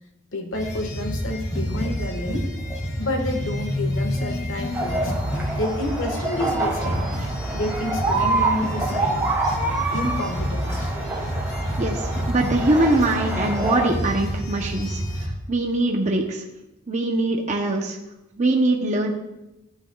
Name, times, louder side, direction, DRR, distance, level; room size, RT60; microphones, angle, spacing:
voice 1, 0.3-2.5 3.0-5.1 5.5-7.2 7.5-9.3 9.9-10.9, left 1 dB, 85° left, 4 dB, 1.5 m, -29 dB
sound 1, 0.5-15.3, equal, 20° left, 3.1 m, -28 dB
sound 2, 4.7-13.9, right 2 dB, 10° right, 2.3 m, -27 dB
voice 2, 11.8-16.4 16.9-18.0 18.4-19.1, right 2 dB, 40° right, 1 dB, 0.8 m, -23 dB
14.0 x 8.2 x 2.3 m, 0.95 s
head